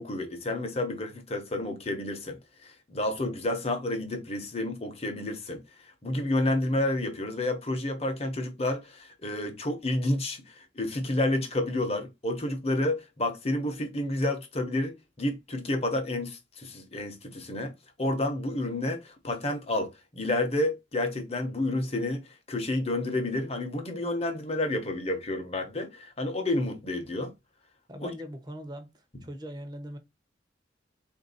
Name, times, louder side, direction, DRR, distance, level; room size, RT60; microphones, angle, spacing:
voice 1, 0.0-17.7 18.0-27.3 28.0-28.1, left 1 dB, 35° left, 1.0 m, -30 dB
voice 2, 27.9-30.0, equal, 25° right, 0.9 m, -41 dB
3.9 x 2.7 x 4.0 m
head